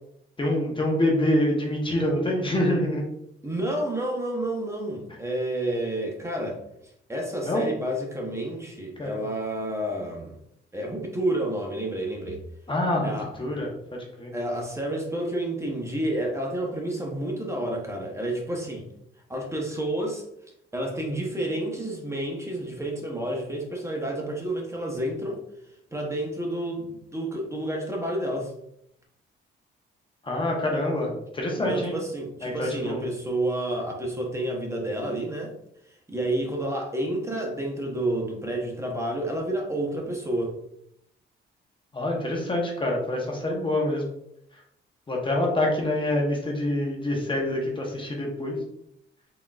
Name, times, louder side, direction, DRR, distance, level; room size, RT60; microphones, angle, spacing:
voice 1, 0.4-3.0 7.4-7.7 9.0-9.2 12.7-13.1 13.4-14.3 30.2-32.0 32.4-33.0 41.9-44.0 45.1-48.6, left 1 dB, 25° left, -1 dB, 1.0 m, -26 dB
voice 2, 3.4-10.4 10.7-12.4 13.0-13.3 14.3-18.9 19.3-20.2 20.7-25.4 25.9-28.5 31.6-35.5 35.9-40.6, right 1 dB, 15° right, 0 dB, 0.9 m, -30 dB
3.8 x 3.5 x 2.4 m, 0.75 s
cardioid pair, 90°, 20 cm